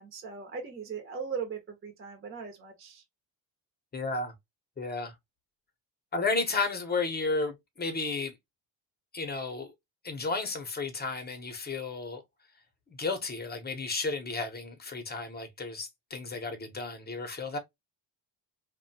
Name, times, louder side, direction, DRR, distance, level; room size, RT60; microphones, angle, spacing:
voice 1, 0.0-3.0, right 6 dB, 30° right, 0.7 m, -39 dB
voice 2, 3.9-4.3 4.8-5.1 6.1-8.3 9.1-9.7 10.0-12.2 12.9-17.6, left 3 dB, 20° left, 0.8 m, -33 dB
2.6 x 2.2 x 2.6 m
cardioid pair, 110°, 46 cm